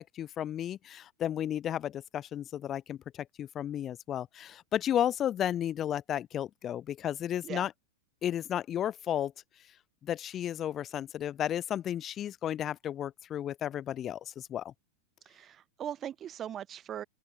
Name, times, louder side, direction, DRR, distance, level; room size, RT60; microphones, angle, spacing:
voice 1, 0.0-3.0 3.4-7.7 8.2-9.3 10.0-14.7, left 10 dB, 30° left, 4.4 m, -33 dB
voice 2, 15.3-17.0, right 10 dB, 30° right, 5.5 m, -40 dB
hypercardioid pair, 105°, 0 cm